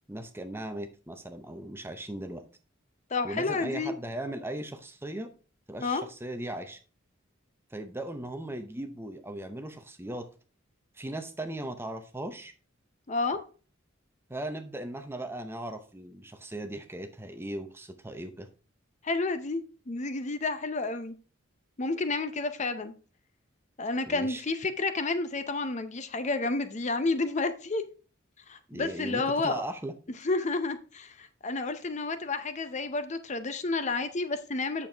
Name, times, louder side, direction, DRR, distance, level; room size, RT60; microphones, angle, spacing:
voice 1, 0.1-2.5 3.2-5.3 5.7-6.8 7.7-10.3 10.9-12.5 14.3-18.5 24.1-24.4 28.7-29.9, right 1 dB, 10° right, 8 dB, 0.7 m, -38 dB
voice 2, 3.1-3.9 5.8-6.0 13.1-13.4 19.0-21.1 21.8-22.9 23.8-27.8 28.5-29.6 30.2-34.9, left 3 dB, 35° left, 11 dB, 0.6 m, -30 dB
8.5 x 6.8 x 3.4 m, 0.37 s
head